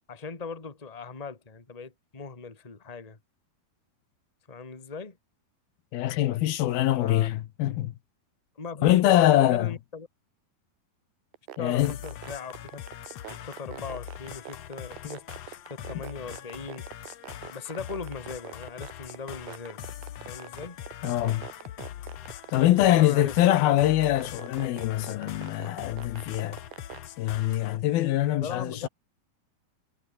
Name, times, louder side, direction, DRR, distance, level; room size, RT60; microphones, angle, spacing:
voice 1, 0.1-3.2 4.5-5.2 7.0-7.3 8.6-10.1 11.6-12.5 13.3-19.8 20.2-20.8 22.8-23.3 28.4-28.9, left 4 dB, 15° left, 1.9 m, -39 dB
voice 2, 5.9-7.9 8.8-9.7 11.6-12.0 21.0-21.5 22.5-26.6 27.2-28.9, left 14 dB, 75° left, 3.0 m, -23 dB
sound 1, 11.3-27.0, right 14 dB, 80° right, 3.1 m, -43 dB
sound 2, 11.8-27.8, left 11 dB, 60° left, 1.8 m, -42 dB
omnidirectional pair, 4.4 m